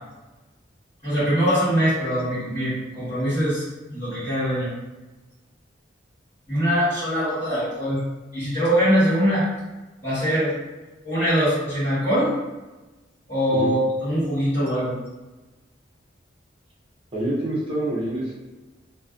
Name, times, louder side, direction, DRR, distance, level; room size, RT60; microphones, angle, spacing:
voice 1, 1.0-4.7 6.5-8.0 8.3-9.5 10.0-10.5 11.0-12.3 13.3-14.9, equal, 35° left, -15 dB, 1.3 m, -22 dB
voice 2, 17.1-18.4, right 1 dB, 30° right, -6 dB, 0.5 m, -26 dB
2.5 x 2.1 x 2.3 m, 1.1 s
head